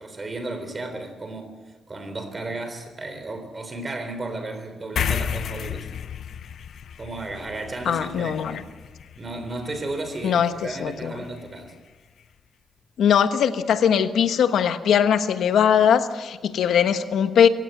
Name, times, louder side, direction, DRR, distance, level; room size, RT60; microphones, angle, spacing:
voice 1, 0.0-1.5 1.9-5.9 7.0-8.6 9.2-11.7, right 2 dB, 25° right, 8 dB, 3.7 m, -34 dB
sound 1, 5.0-11.7, left 8 dB, 65° left, 0.9 m, -34 dB
voice 2, 7.9-8.6 10.2-11.2 13.0-17.5, left 8 dB, 80° left, 9 dB, 1.2 m, -20 dB
26.5 x 16.5 x 7.8 m, 1.3 s
wide cardioid pair, 140°, 0 cm